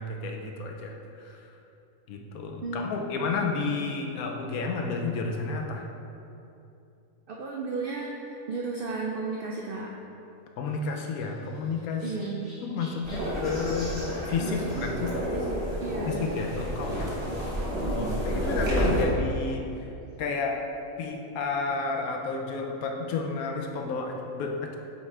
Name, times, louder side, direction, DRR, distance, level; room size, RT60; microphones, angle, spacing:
voice 1, 0.0-1.5 2.1-5.8 10.6-12.0 12.6-15.2 16.1-17.1 17.9-19.7 20.2-20.6 21.0-24.8, left 4 dB, 80° left, 2 dB, 1.1 m, -31 dB
voice 2, 2.6-3.0 7.3-9.9 12.0-12.5 14.4-16.2 17.3-17.5 17.9-18.2, right 3 dB, 70° right, -1 dB, 0.5 m, -34 dB
Chirp tweet, 10.6-14.9 16.1-16.3 17.0-17.1 17.3-17.4 18.7-18.8, equal, 25° left, 1.6 m, -49 dB
sound 1, 13.0-19.0, equal, 30° right, 1.0 m, -30 dB
8.1 x 3.6 x 3.2 m, 2.7 s
omnidirectional pair, 1.5 m